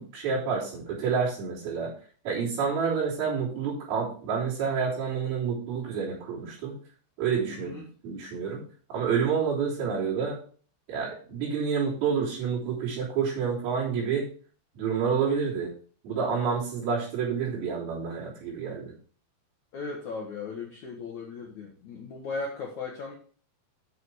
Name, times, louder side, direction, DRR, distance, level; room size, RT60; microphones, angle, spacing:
voice 1, 0.0-1.9 2.2-6.8 7.2-8.6 8.9-10.4 10.9-14.3 14.7-15.7 16.0-18.9, right 6 dB, 55° right, -6 dB, 4.9 m, -29 dB
voice 2, 7.5-7.8 19.7-23.2, left 4 dB, 80° left, 0 dB, 1.6 m, -37 dB
8.9 x 6.5 x 4.7 m, 0.42 s
omnidirectional pair, 5.5 m